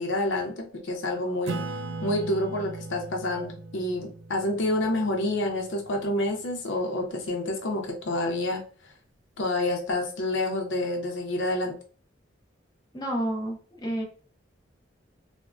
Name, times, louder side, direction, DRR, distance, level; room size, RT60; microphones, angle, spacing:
voice 1, 0.0-1.6 2.0-8.6 9.4-11.7, left 1 dB, 75° left, 1 dB, 0.6 m, -28 dB
Acoustic guitar / Strum, 1.5-6.4, right 3 dB, 85° right, 0.4 m, -38 dB
voice 2, 12.9-14.0, right 1 dB, 20° left, -1 dB, 0.7 m, -30 dB
3.4 x 2.1 x 2.4 m, 0.40 s
head